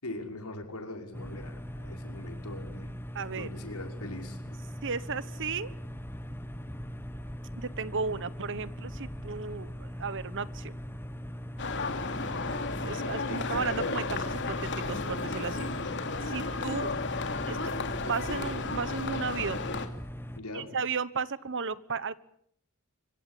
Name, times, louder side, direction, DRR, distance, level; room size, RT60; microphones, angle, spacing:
voice 1, 0.0-2.9 3.3-4.6 13.3-13.4 20.4-20.7, left 2 dB, 85° left, 3 dB, 5.9 m, -41 dB
sound 1, 1.1-20.4, equal, 10° left, 1.3 m, -41 dB
voice 2, 3.1-3.5 4.8-5.7 7.5-10.8 12.8-15.7 16.2-16.9 17.5-19.7 20.5-22.1, right 5 dB, 60° right, 17 dB, 1.2 m, -34 dB
sound 2, 11.6-19.9, left 3 dB, 55° left, 2.7 m, -33 dB
25.0 x 23.5 x 8.4 m, 0.67 s
head